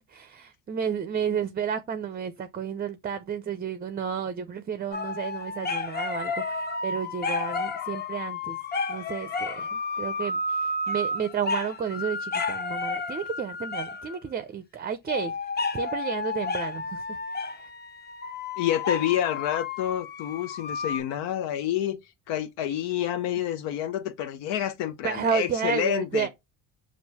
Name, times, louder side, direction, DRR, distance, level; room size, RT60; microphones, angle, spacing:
voice 1, 0.1-8.6 8.9-15.3 15.7-17.0 17.3-17.6 25.0-26.3, right 7 dB, 25° right, 0.5 m, -31 dB
sound 1, 4.9-14.2 15.1-21.0, left 3 dB, 25° left, 0.6 m, -31 dB
voice 2, 18.6-22.0 22.3-26.3, left 11 dB, 85° left, 0.6 m, -28 dB
5.4 x 2.5 x 2.7 m
supercardioid pair, 85°, 40 cm